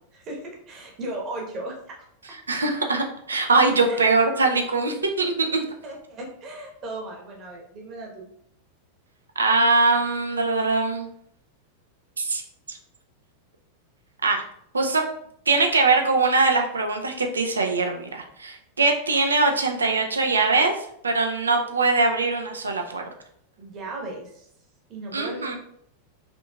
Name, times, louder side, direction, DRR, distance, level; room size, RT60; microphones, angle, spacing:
voice 1, 0.1-2.4 3.9-4.1 5.8-8.3 23.6-24.5 24.9-25.6, right 2 dB, 35° right, 0 dB, 1.1 m, -36 dB
voice 2, 2.5-5.7 9.4-11.1 12.2-12.4 12.7-12.8 14.2-14.4 14.7-15.0 15.5-20.7 21.0-23.0 25.1-25.6, right 3 dB, 75° right, 4 dB, 0.5 m, -22 dB
5.2 x 2.7 x 2.3 m, 0.71 s
figure-of-eight pair, 90°, 0 cm